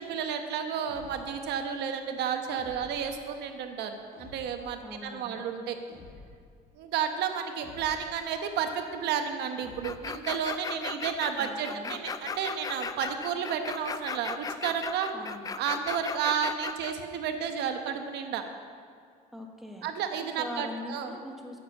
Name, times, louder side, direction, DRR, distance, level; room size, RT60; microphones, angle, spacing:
voice 1, 0.0-5.8 6.8-15.1 15.6-18.4 19.8-21.1, right 7 dB, 80° right, 6 dB, 1.1 m, -32 dB
sound 1, 0.8-1.5 2.5-3.2 4.1-4.8 5.9-6.5 7.6-8.2 9.6-10.2, left 3 dB, 60° left, 2.4 m, -50 dB
voice 2, 4.8-5.4 11.4-12.0 15.1-15.5 19.3-19.9 20.4-21.6, left 1 dB, ahead, 1 dB, 1.4 m, -41 dB
sound 2, 9.8-16.9, left 5 dB, 20° left, 0.4 m, -36 dB
9.3 x 6.9 x 7.1 m, 2.2 s
cardioid pair, 110°, 17 cm